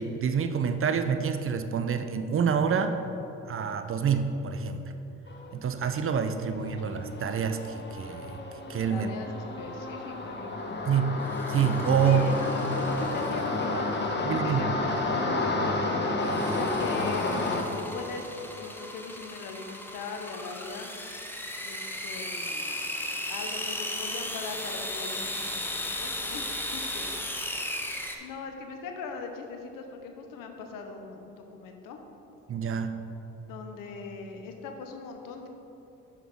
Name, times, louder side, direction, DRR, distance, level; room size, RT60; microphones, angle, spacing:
voice 1, 0.0-3.0 3.5-4.8 5.5-8.4 8.7-9.1 10.8-11.1 11.5-12.2 14.2-14.6 32.5-33.0, right 7 dB, 40° right, 8 dB, 0.5 m, -27 dB
sound 1, 5.3-5.5 5.9-17.6, left 2 dB, 30° left, 1.1 m, -31 dB
voice 2, 6.5-6.9 8.9-11.3 12.0-16.0 16.4-20.9 21.6-22.9 23.3-27.2 28.2-32.0 33.5-35.5, left 4 dB, 70° left, 4 dB, 0.8 m, -40 dB
sound 2, 11.2-13.7 16.2-28.1, left 1 dB, 5° left, 0.8 m, -36 dB
6.0 x 5.5 x 4.6 m, 3.0 s
hypercardioid pair, 45°, 34 cm